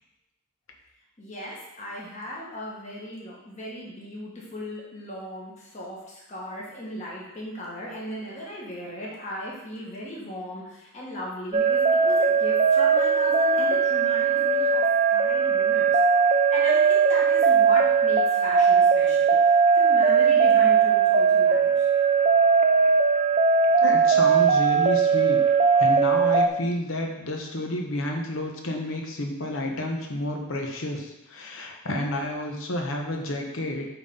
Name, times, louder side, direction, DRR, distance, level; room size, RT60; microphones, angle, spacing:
voice 1, 1.2-16.0 16.5-21.9, left 1 dB, 35° left, -5 dB, 1.7 m, -37 dB
sound 1, 11.5-26.5, right 5 dB, 30° right, 0.3 m, -19 dB
voice 2, 23.8-25.4 25.8-33.9, left 1 dB, 65° left, 2 dB, 1.0 m, -30 dB
7.9 x 4.0 x 3.8 m, 0.93 s
head